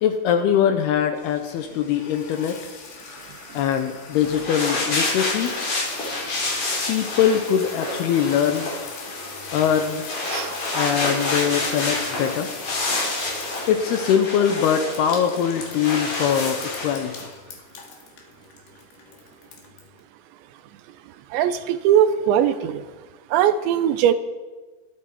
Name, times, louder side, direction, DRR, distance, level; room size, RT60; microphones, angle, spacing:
voice 1, 0.0-2.6 3.5-5.6 6.9-8.7 9.5-10.1 10.7-12.5 13.7-17.3, left 8 dB, 75° left, 7 dB, 2.5 m, -22 dB
sound 1, 1.2-20.0, left 5 dB, 60° left, 3.8 m, -42 dB
sound 2, 4.1-17.3, left 2 dB, 40° left, 4.5 m, -28 dB
voice 2, 21.3-22.8 23.3-24.1, right 10 dB, 80° right, 11 dB, 3.0 m, -20 dB
22.0 x 12.5 x 4.6 m, 1.3 s
omnidirectional pair, 5.3 m